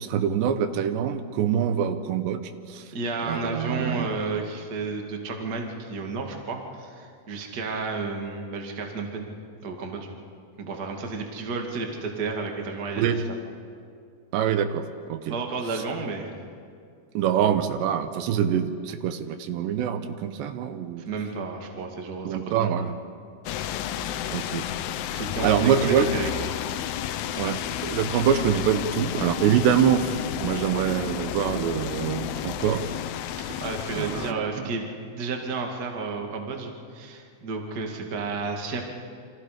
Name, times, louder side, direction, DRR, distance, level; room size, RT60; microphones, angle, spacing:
voice 1, 0.0-2.4 2.7-2.8 3.3-4.1 13.0-13.2 14.3-14.8 15.1-15.4 17.1-21.0 22.3-22.9 24.3-24.7 25.4-26.1 27.4-27.6 27.8-30.1 30.4-32.8 34.0-34.4, right 8 dB, 80° right, 9 dB, 3.1 m, -24 dB
voice 2, 2.9-9.3 9.6-10.1 10.6-13.1 15.2-16.3 21.0-22.9 25.1-26.3 33.3-38.8, right 4 dB, 35° right, 2 dB, 1.6 m, -32 dB
sound 1, 23.5-34.3, left 11 dB, 75° left, 2.6 m, -31 dB
29.5 x 25.0 x 5.0 m, 2.3 s
omnidirectional pair, 5.0 m